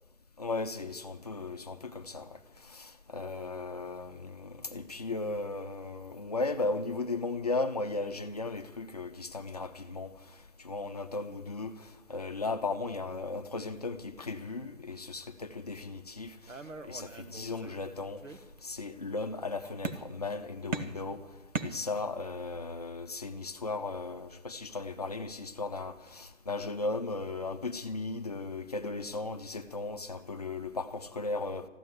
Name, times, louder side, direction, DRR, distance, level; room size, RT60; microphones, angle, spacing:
voice 1, 0.4-2.3 2.7-10.1 10.6-16.3 16.8-18.2 18.6-21.2 21.6-31.7, left 3 dB, 30° left, 8 dB, 0.7 m, -36 dB
sound 1, 16.5-17.8 18.2-18.9 19.8-20.4 20.7-22.3, right 4 dB, 80° right, 1.4 m, -40 dB
14.0 x 11.0 x 8.0 m, 1.1 s
figure-of-eight pair, 165°, 38 cm